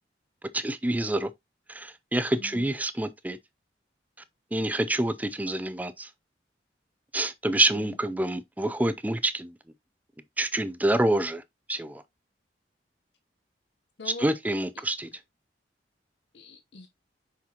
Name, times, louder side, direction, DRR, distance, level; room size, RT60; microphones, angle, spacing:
voice 1, 0.5-1.3 1.7-3.4 4.5-6.1 7.1-9.5 10.4-11.4 11.7-12.0 14.2-15.1, right 1 dB, 10° right, 0.4 m, -27 dB
voice 2, 2.4-2.7 7.7-8.0 14.0-14.8 16.3-16.9, left 2 dB, 75° left, 0.9 m, -43 dB
6.0 x 5.9 x 2.9 m
head